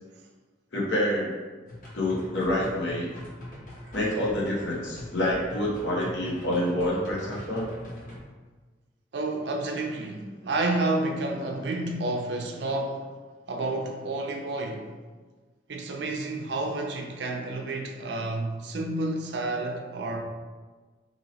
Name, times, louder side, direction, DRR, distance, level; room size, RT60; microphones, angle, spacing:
voice 1, 0.7-1.4 1.9-3.1 3.9-7.7, left 1 dB, 85° left, 0.9 m, -27 dB
sound 1, 1.7-8.2, left 1 dB, 45° left, 1.0 m, -43 dB
voice 2, 9.1-13.1 13.5-14.9 15.7-20.2, right 2 dB, 70° right, 0.5 m, -30 dB
2.9 x 2.7 x 4.1 m
head